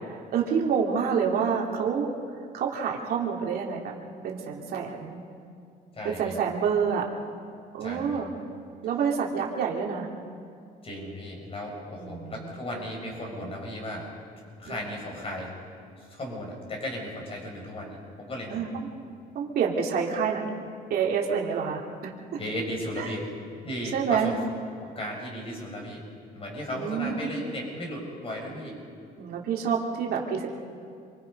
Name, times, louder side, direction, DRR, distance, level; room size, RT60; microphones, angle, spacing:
voice 1, 0.1-2.1 2.5-3.9 4.2-5.2 6.0-7.1 7.7-8.3 8.8-10.1 12.0-12.6 14.7-14.8 18.5-19.0 19.3-20.5 20.9-22.4 23.0-23.1 23.9-24.3 26.7-27.3 29.2-30.5, right 6 dB, 65° right, -1 dB, 2.8 m, -28 dB
voice 2, 5.9-6.4 7.8-8.2 10.8-14.1 14.6-15.5 16.0-18.7 22.4-23.3 23.6-24.3 24.8-26.0 26.3-28.8, left 1 dB, 35° left, 0 dB, 6.8 m, -35 dB
28.0 x 23.5 x 5.4 m, 2.3 s
cardioid pair, 110°, 17 cm